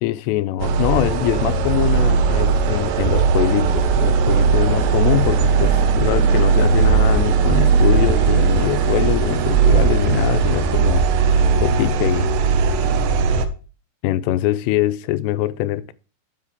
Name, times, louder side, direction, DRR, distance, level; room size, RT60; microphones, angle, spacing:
voice 1, 0.0-11.1 11.6-12.3 14.0-15.9, left 15 dB, 85° left, 2.7 m, -23 dB
sound 1, 0.6-13.5, right 5 dB, 85° right, 3.0 m, -17 dB
8.2 x 7.7 x 3.5 m
omnidirectional pair, 4.9 m